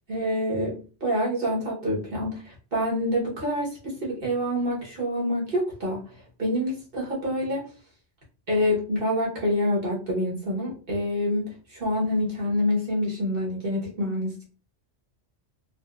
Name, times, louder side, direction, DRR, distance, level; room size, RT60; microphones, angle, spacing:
voice 1, 0.1-6.0 6.4-7.6 8.5-14.4, left 1 dB, 50° right, -3 dB, 1.2 m, -27 dB
3.8 x 2.3 x 2.3 m, 0.36 s
omnidirectional pair, 1.2 m